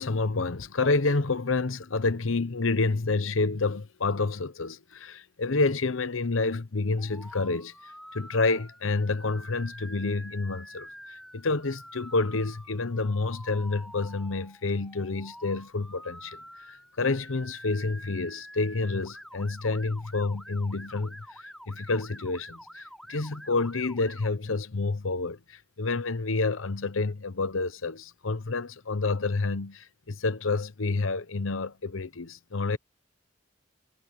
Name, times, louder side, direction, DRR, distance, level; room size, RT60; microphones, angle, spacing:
voice 1, 0.0-7.7 8.1-16.4 16.7-32.8, left 3 dB, 80° left, 0.9 m, -29 dB
Motor vehicle (road) / Siren, 7.0-24.3, equal, ahead, 3.7 m, -47 dB
head